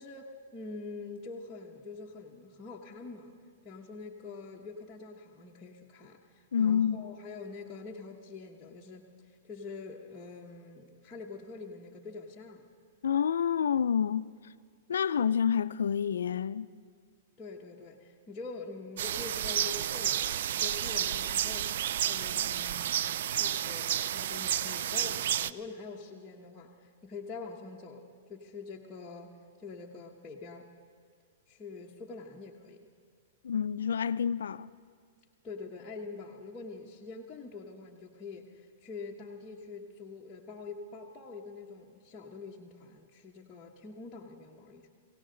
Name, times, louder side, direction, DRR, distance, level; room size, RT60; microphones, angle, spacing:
voice 1, 0.0-3.3 3.6-12.6 17.4-21.7 22.0-30.7 31.5-32.8 35.4-44.9, left 4 dB, 20° left, 1.0 m, -45 dB
voice 2, 6.5-7.1 13.0-14.3 14.9-16.7 33.4-34.7, left 7 dB, 90° left, 0.4 m, -28 dB
sound 1, 19.0-25.5, right 10 dB, 65° right, 0.3 m, -31 dB
20.5 x 17.0 x 3.9 m
hypercardioid pair, 145°, 0 cm